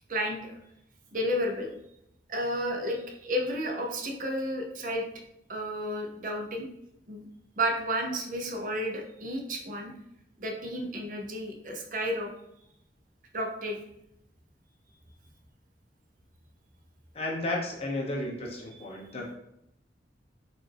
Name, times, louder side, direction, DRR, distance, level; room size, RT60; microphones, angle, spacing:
voice 1, 0.1-0.6 1.1-1.7 2.3-5.1 5.5-6.7 7.1-7.3 7.6-9.9 10.4-12.3 13.3-13.8, equal, 45° right, 1 dB, 0.6 m, -32 dB
voice 2, 17.1-19.4, left 1 dB, 35° left, -2 dB, 0.8 m, -33 dB
4.2 x 2.6 x 3.3 m, 0.78 s
head